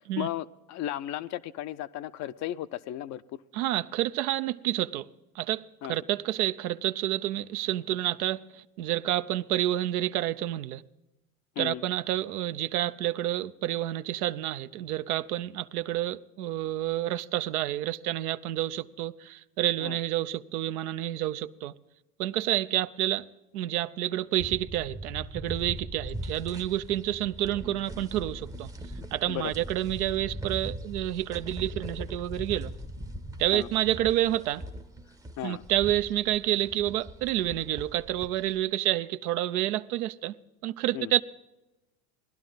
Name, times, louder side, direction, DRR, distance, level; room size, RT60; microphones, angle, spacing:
voice 1, 0.2-3.4 5.8-6.0 11.6-11.8 19.8-20.0 29.3-29.5 33.5-33.7 35.4-35.6 40.9-41.1, left 13 dB, 40° left, 0.5 m, -35 dB
voice 2, 3.5-5.1 5.3-10.8 11.6-21.7 22.2-23.3 23.5-28.7 29.1-32.7 33.4-34.6 35.4-40.3 40.6-41.2, right 13 dB, 70° right, 0.7 m, -29 dB
sound 1, 24.4-38.6, right 1 dB, 10° right, 0.7 m, -40 dB
18.5 x 11.5 x 3.9 m
hypercardioid pair, 90°, 45 cm